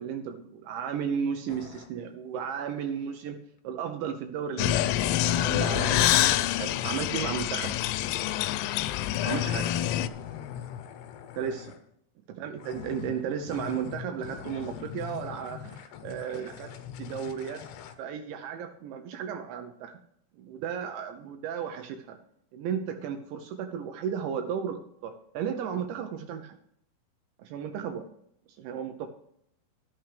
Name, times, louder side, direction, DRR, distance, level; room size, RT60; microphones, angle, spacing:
voice 1, 0.0-3.4 3.6-7.8 9.2-9.7 11.4-11.7 12.4-16.7 17.0-17.6 18.0-20.0 20.4-22.2 22.5-26.6 27.4-28.1 28.6-29.1, right 7 dB, 80° right, 6 dB, 2.8 m, -34 dB
sound 1, 1.5-1.9 5.0-11.9 12.6-17.9, left 9 dB, 75° left, 2.6 m, -42 dB
sound 2, 4.6-10.1, left 13 dB, 90° left, 3.2 m, -26 dB
11.5 x 11.5 x 3.3 m, 0.72 s
omnidirectional pair, 5.7 m